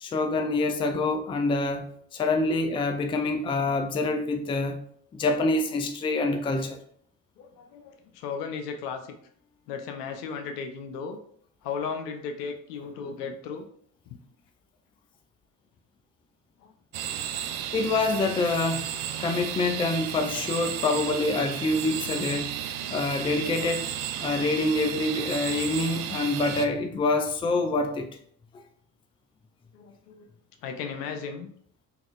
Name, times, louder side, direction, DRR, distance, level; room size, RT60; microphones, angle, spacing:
voice 1, 0.0-4.8 5.1-6.8 17.7-18.9 19.2-22.5 22.9-23.9 24.2-28.1, left 2 dB, 15° left, 0.3 m, -26 dB
voice 2, 7.4-9.0 9.7-11.2 11.6-13.6 14.1-14.2 16.6-16.7 29.7-30.2 30.6-31.5, left 5 dB, 85° left, 0.6 m, -35 dB
sound 1, 16.9-26.7, right 10 dB, 50° right, 0.5 m, -33 dB
4.0 x 2.4 x 2.4 m
hypercardioid pair, 60°, 46 cm